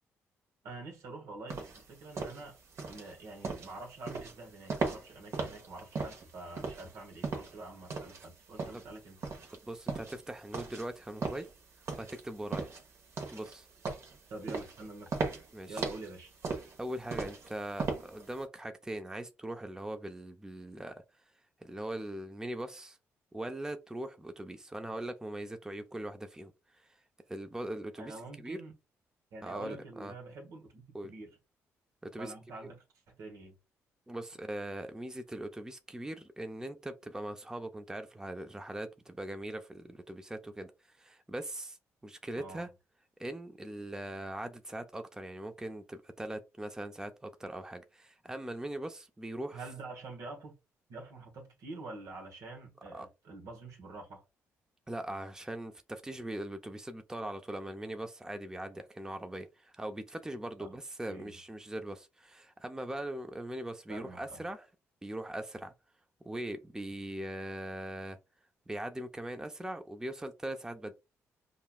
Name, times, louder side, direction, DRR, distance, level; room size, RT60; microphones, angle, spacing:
voice 1, 0.6-2.6 2.9-9.2 14.3-15.3 15.7-16.3 28.0-28.8 29.3-31.4 32.2-33.6 42.4-42.7 49.5-50.6 50.9-54.2 60.6-60.7 61.1-61.4 63.9-64.4, right 2 dB, 75° right, 1.2 m, -46 dB
sound 1, 1.5-18.4, right 4 dB, 55° right, 1.2 m, -38 dB
voice 2, 9.6-11.5 12.0-12.7 13.3-13.7 15.5-15.9 16.8-21.0 21.6-23.0 23.3-26.9 27.3-28.6 29.4-30.1 30.9-31.1 32.0-32.3 34.1-41.8 42.0-42.7 43.2-49.6 52.9-53.1 54.9-64.7 65.0-65.7 66.2-68.2 68.7-70.9, right 1 dB, 10° right, 0.6 m, -41 dB
5.3 x 2.3 x 2.3 m
supercardioid pair, 70°, 6 cm